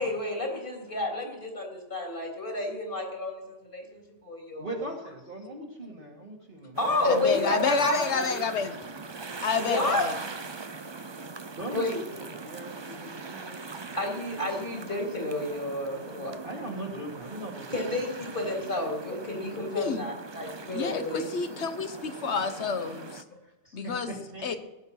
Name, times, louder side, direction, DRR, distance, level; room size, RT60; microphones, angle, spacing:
voice 1, 0.0-4.9 6.8-8.4 9.6-10.1 11.7-12.0 14.0-16.4 17.7-21.6 21.9-22.0 23.7-23.8, left 2 dB, 45° left, 1 dB, 3.5 m, -31 dB
voice 2, 4.6-7.1 7.5-7.9 11.5-13.9 16.4-18.4 23.4-23.5 23.8-24.6, right 1 dB, 45° right, -2 dB, 2.4 m, -41 dB
sound 1, 6.7-23.2, right 4 dB, 30° right, 0.6 m, -41 dB
voice 3, 7.0-8.8 9.4-10.1 19.7-20.1 20.7-23.2 23.7-24.1 24.4-24.6, left 5 dB, 65° left, 10 dB, 1.4 m, -29 dB
18.5 x 10.5 x 5.8 m, 1.1 s
omnidirectional pair, 1.2 m